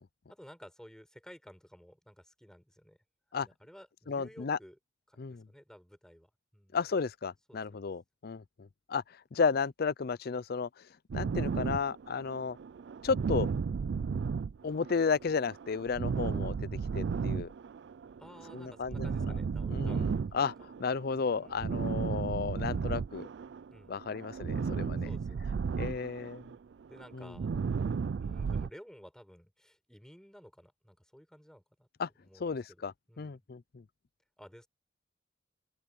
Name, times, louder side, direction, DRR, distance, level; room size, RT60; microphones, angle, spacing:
voice 1, 0.3-3.0 3.4-4.8 5.1-6.8 7.5-7.8 13.9-14.1 18.2-20.4 21.2-21.8 23.7-23.9 25.0-25.6 26.9-27.5 28.2-31.9 32.2-32.8 33.1-33.4 34.4-34.7, equal, 5° left, 5.5 m, -54 dB
voice 2, 4.1-4.6 5.2-5.5 6.7-9.0 9.3-10.7 11.1-12.6 13.0-13.5 14.6-17.5 18.5-19.4 19.7-20.5 20.8-23.3 23.9-25.1 25.8-26.4 27.1-27.3 32.0-32.1 32.4-33.8, left 5 dB, 55° left, 0.5 m, -33 dB
sound 1, 11.1-23.7 24.0-28.7, right 5 dB, 70° right, 0.4 m, -34 dB
open air
head